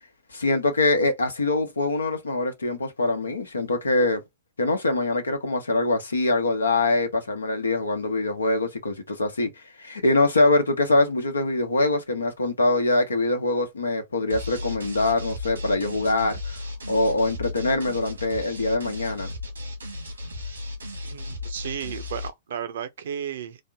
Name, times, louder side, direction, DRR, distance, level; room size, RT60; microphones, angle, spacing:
voice 1, 0.3-4.2 4.6-9.5 9.8-19.3, left 2 dB, 85° left, 0.9 m, -24 dB
sound 1, 14.3-22.3, left 2 dB, 90° right, 1.3 m, -35 dB
voice 2, 21.0-23.6, right 8 dB, 65° right, 0.6 m, -34 dB
3.4 x 2.1 x 3.5 m
hypercardioid pair, 115°, 0 cm